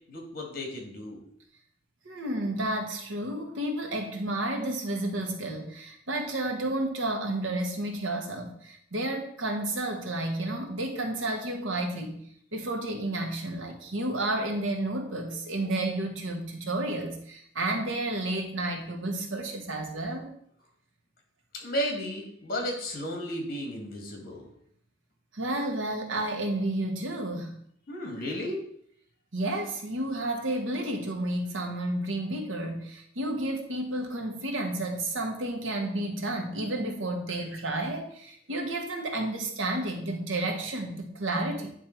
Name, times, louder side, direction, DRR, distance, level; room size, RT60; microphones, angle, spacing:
voice 1, 0.1-1.3 21.5-24.5 27.9-28.6, equal, 50° left, 1 dB, 1.8 m, -34 dB
voice 2, 2.0-12.2 12.5-20.3 25.3-27.6 29.3-41.7, right 1 dB, 90° right, 3 dB, 1.3 m, -31 dB
9.3 x 3.3 x 4.4 m, 0.66 s
head